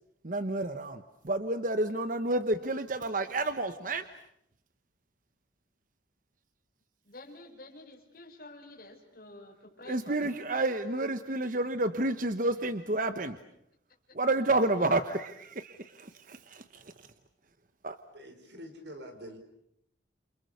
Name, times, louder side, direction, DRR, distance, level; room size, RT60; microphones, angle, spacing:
voice 1, 0.2-4.1 9.9-13.4 14.1-17.1 17.8-18.0, right 2 dB, 45° right, 10 dB, 1.1 m, -30 dB
voice 2, 7.0-10.4 11.0-11.1, left 2 dB, 50° left, 1 dB, 5.4 m, -49 dB
voice 3, 18.1-19.4, equal, 65° right, 6 dB, 4.8 m, -46 dB
28.5 x 28.5 x 6.8 m, 0.74 s
head